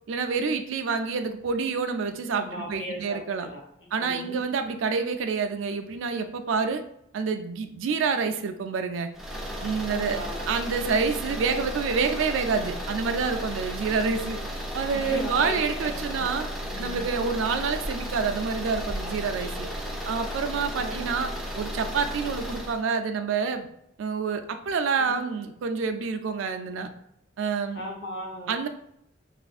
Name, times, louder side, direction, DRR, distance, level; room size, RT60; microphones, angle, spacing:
voice 1, 0.1-3.5 3.9-6.8 7.1-9.1 9.6-10.2 10.5-14.4 14.7-16.5 16.8-19.7 20.0-21.3 21.5-23.7 24.0-26.9 27.4-27.8 28.5-28.7, right 5 dB, 80° right, 7 dB, 0.3 m, -28 dB
voice 2, 2.3-4.4 9.9-10.5 14.9-16.3 16.6-17.1 19.4-19.5 20.2-20.4 20.7-21.0 25.0-25.2 27.7-28.6, equal, 65° left, -2 dB, 0.9 m, -37 dB
sound 1, 9.1-22.8, equal, ahead, 0.3 m, -34 dB
3.3 x 2.5 x 2.4 m, 0.75 s
head